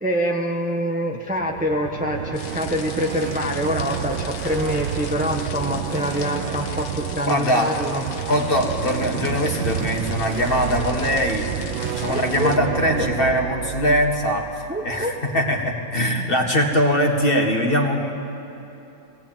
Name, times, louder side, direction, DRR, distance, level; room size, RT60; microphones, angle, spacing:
voice 1, 0.0-8.0 11.8-12.5 12.9-13.1 14.7-15.1, equal, 10° right, 1 dB, 0.5 m, -25 dB
sound 1, 1.3-15.3, right 10 dB, 70° right, 1.3 m, -30 dB
sound 2, 2.3-12.6, left 8 dB, 80° left, 1.8 m, -39 dB
voice 2, 7.3-7.7 8.2-11.5 12.0-14.5 14.8-18.1, equal, 25° left, 2 dB, 1.8 m, -21 dB
20.5 x 17.5 x 9.0 m, 3.0 s
omnidirectional pair, 2.4 m